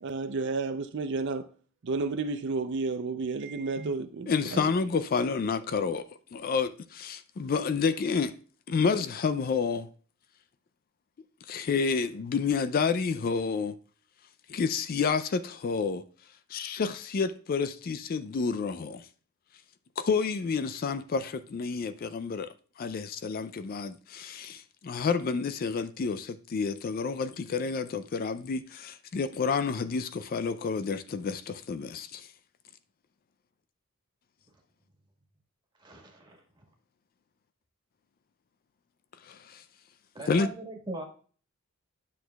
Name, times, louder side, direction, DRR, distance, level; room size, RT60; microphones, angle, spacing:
voice 1, 0.0-1.5 1.8-4.7, right 3 dB, 60° right, 0.5 m, -31 dB
voice 2, 4.3-8.4 8.7-9.9 11.5-13.7 14.5-16.0 16.5-19.1 20.0-32.3 39.2-39.6 40.3-40.5, left 5 dB, 45° left, 0.4 m, -29 dB
voice 3, 35.8-36.4 40.1-41.0, right 2 dB, 20° right, 1.5 m, -40 dB
9.9 x 6.2 x 2.3 m
head